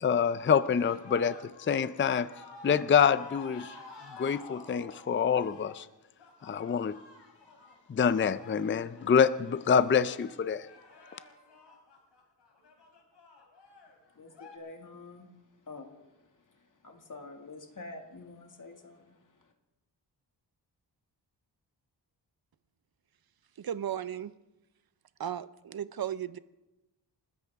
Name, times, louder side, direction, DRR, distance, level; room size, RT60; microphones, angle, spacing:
voice 1, 0.0-2.3 2.6-3.7 4.2-5.9 6.4-7.0 7.9-10.7, left 7 dB, 30° left, 15 dB, 0.4 m, -26 dB
sound 1, 0.7-14.6, left 3 dB, 75° left, 3.6 m, -51 dB
voice 2, 14.2-15.2 15.7-15.9 16.8-19.2, left 3 dB, 45° left, 3 dB, 2.1 m, -46 dB
voice 3, 23.6-24.3 25.2-26.4, right 10 dB, 55° right, 15 dB, 0.7 m, -35 dB
29.0 x 13.5 x 3.6 m, 1.0 s
wide cardioid pair, 125°, 43 cm